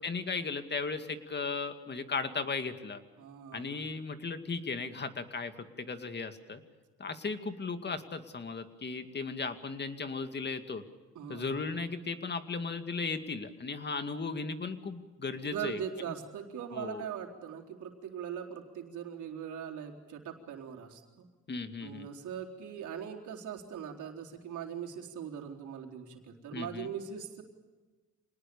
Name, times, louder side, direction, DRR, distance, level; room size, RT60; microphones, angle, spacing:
voice 1, 0.0-3.0 3.5-5.5 5.8-6.6 7.0-10.8 11.3-15.8 16.7-17.0 21.5-22.1 26.5-26.9, left 4 dB, 35° left, 8 dB, 2.4 m, -36 dB
voice 2, 3.2-3.9 11.1-11.7 15.4-21.3 21.8-27.4, right 8 dB, 75° right, 1 dB, 4.1 m, -41 dB
27.0 x 19.5 x 7.1 m, 1.3 s
cardioid pair, 90°, 30 cm